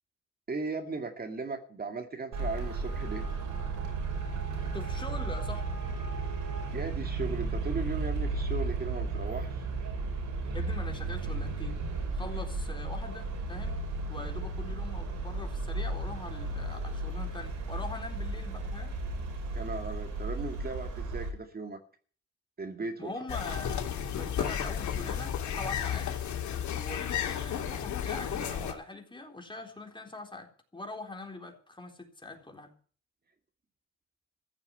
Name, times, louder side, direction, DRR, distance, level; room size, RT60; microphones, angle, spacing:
voice 1, 0.5-3.3 6.7-9.6 19.5-21.8 22.6-23.1, right 4 dB, 30° right, 5 dB, 2.3 m, -37 dB
Traffic noise roadway noise, 2.3-21.3, right 3 dB, 80° right, 5.9 m, -34 dB
voice 2, 4.7-5.7 10.5-11.8 12.1-13.8 14.1-18.9 23.0-26.1 26.8-32.7, left 2 dB, 15° left, 3 dB, 3.9 m, -43 dB
sound 1, 23.3-28.7, left 9 dB, 70° left, 3.0 m, -33 dB
15.0 x 7.1 x 9.9 m, 0.43 s
cardioid pair, 90°, 30 cm